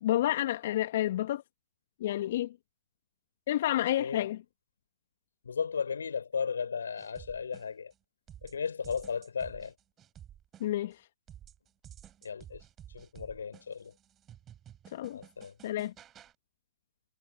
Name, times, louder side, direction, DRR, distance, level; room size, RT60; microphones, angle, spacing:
voice 1, 0.0-1.4 2.0-2.5 3.5-4.4 10.6-11.0 14.9-15.2 15.6-15.9, left 13 dB, 55° left, 1.5 m, -29 dB
voice 2, 5.4-7.9 8.4-9.7 12.2-12.6 12.9-13.9 15.1-15.5, left 6 dB, 75° left, 4.5 m, -35 dB
sound 1, 7.0-7.9 8.3-10.9 11.3-16.3, right 10 dB, 20° right, 4.5 m, -53 dB
hypercardioid pair, 120°, 0 cm